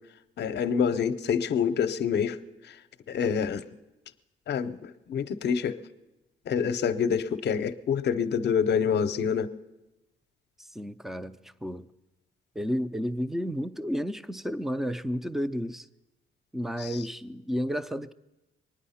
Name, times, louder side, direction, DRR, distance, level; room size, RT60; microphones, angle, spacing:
voice 1, 0.4-2.4 3.1-3.6 4.5-4.8 5.1-5.8 6.5-9.5 16.8-16.9, left 7 dB, 60° left, 0.7 m, -26 dB
voice 2, 10.6-11.9 12.6-15.9 16.5-18.1, equal, ahead, 0.5 m, -32 dB
23.0 x 9.6 x 5.7 m
cardioid pair, 90°, 20 cm